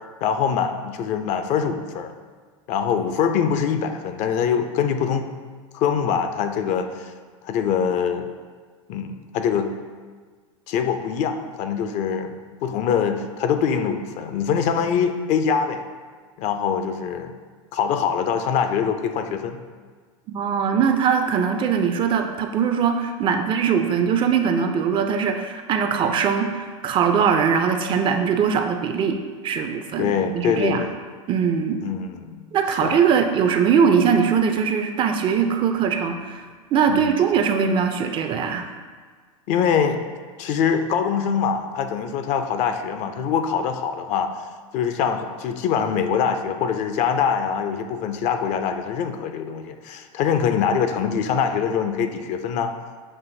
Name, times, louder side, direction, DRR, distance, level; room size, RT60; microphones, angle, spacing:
voice 1, 0.2-2.1 2.7-5.3 5.7-7.1 7.4-8.3 8.9-9.7 10.7-15.9 16.4-17.3 17.7-19.6 30.0-30.9 31.8-32.4 32.8-33.0 36.9-37.2 39.5-40.0 40.4-44.3 44.7-52.7, left 7 dB, 45° left, 8 dB, 0.4 m, -23 dB
voice 2, 20.3-29.2 29.4-30.8 31.3-31.8 32.5-36.4 36.7-38.7, right 7 dB, 30° right, 6 dB, 0.3 m, -21 dB
7.3 x 2.6 x 2.6 m, 1.6 s
hypercardioid pair, 95°, 17 cm